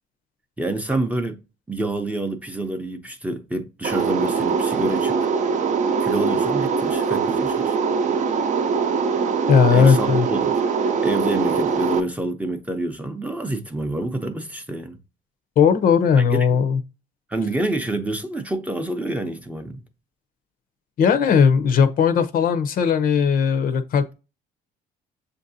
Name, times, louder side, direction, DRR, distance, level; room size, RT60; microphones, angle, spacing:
voice 1, 0.6-1.4 1.7-5.2 6.0-7.7 9.7-10.5 11.0-15.0 16.2-16.6 17.3-19.8, right 2 dB, 10° right, 0.6 m, -27 dB
sound 1, 3.8-12.0, right 5 dB, 45° right, 0.6 m, -22 dB
voice 2, 9.5-10.3 15.6-16.8 21.0-24.1, left 6 dB, 55° left, 0.6 m, -17 dB
6.8 x 2.6 x 2.7 m
cardioid pair, 110°, 17 cm